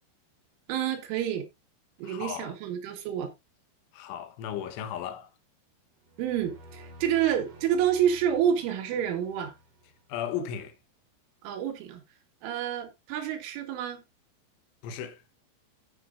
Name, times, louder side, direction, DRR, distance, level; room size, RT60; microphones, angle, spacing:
voice 1, 0.7-1.5 2.0-3.3 6.2-9.5 11.4-12.0 12.4-14.0, right 9 dB, 85° right, 4.0 m, -28 dB
voice 2, 2.0-2.6 3.9-5.3 10.1-10.7 14.8-15.2, left 9 dB, 90° left, 3.5 m, -35 dB
sound 1, 6.0-10.3, equal, 55° right, 2.8 m, -51 dB
14.0 x 7.4 x 2.5 m
omnidirectional pair, 5.4 m